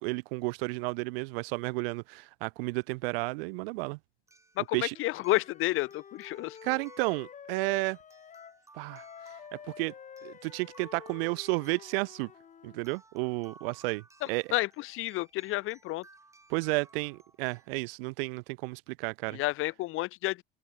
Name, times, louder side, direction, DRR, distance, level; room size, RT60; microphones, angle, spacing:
voice 1, 0.0-4.0 4.7-5.0 6.6-8.0 8.7-9.0 9.5-9.9 10.2-12.3 12.6-14.5 16.5-19.4, right 27 dB, 70° right, 0.7 m, -32 dB
sound 1, 2.8-2.9 4.3-17.7, right 3 dB, 10° right, 7.0 m, -59 dB
voice 2, 4.6-6.6 14.2-16.0 19.3-20.4, left 18 dB, 45° left, 1.1 m, -31 dB
Wind instrument woodwind instrument, 4.9-8.6 8.9-12.9, left 7 dB, 25° left, 3.8 m, -49 dB
open air
supercardioid pair, 135°, 30 cm